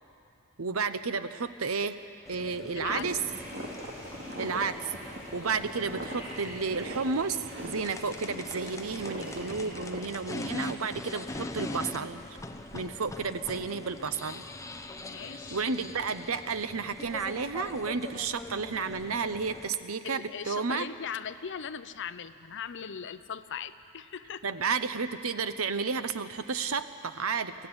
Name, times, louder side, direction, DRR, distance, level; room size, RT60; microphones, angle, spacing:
voice 1, 0.6-2.0 2.3-3.2 4.4-12.4 12.7-14.4 15.5-20.9 24.4-27.5, right 5 dB, 75° right, 11 dB, 0.9 m, -32 dB
sound 1, 2.2-19.7, left 2 dB, 15° left, 0.9 m, -42 dB
voice 2, 2.7-3.1 15.0-15.6 20.0-24.4, left 7 dB, 60° left, 11 dB, 0.7 m, -39 dB
sound 2, 2.9-10.0, right 1 dB, 55° right, 3.0 m, -41 dB
sound 3, 3.3-9.7, left 1 dB, 10° right, 6.8 m, -49 dB
23.5 x 15.0 x 9.8 m, 2.7 s
head